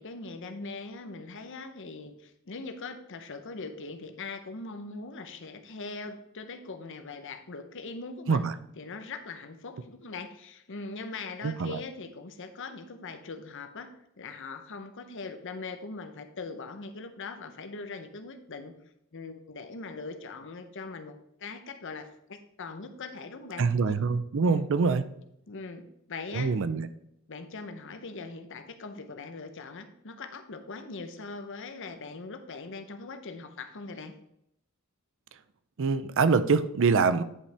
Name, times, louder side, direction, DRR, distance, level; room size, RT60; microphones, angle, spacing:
voice 1, 0.0-8.5 8.8-13.9 14.2-18.7 19.1-23.7 24.4-24.6 25.5-26.5 27.3-34.1, left 3 dB, 60° left, 0.8 m, -41 dB
voice 2, 11.4-11.8 23.6-25.0 26.3-26.9 35.8-37.2, right 4 dB, 60° right, 0.5 m, -25 dB
9.7 x 5.6 x 3.4 m
head